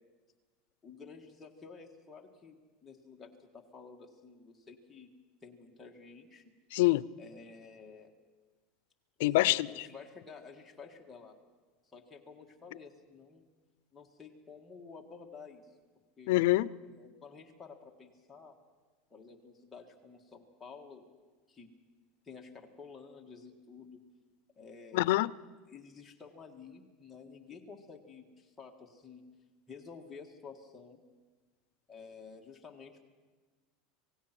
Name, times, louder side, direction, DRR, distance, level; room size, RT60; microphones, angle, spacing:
voice 1, 0.8-5.1 5.4-6.4 7.2-8.1 9.3-11.3 11.9-13.4 13.9-15.7 16.2-16.3 16.8-18.6 19.1-21.1 21.5-21.7 22.2-24.0 24.6-25.1 25.7-29.2 29.7-31.0 31.9-33.0, left 5 dB, 10° left, 1.7 m, -51 dB
voice 2, 6.7-7.1 9.2-9.7 16.3-16.7 24.9-25.3, left 18 dB, 75° left, 0.5 m, -25 dB
26.5 x 18.0 x 6.0 m
supercardioid pair, 160°, 0 cm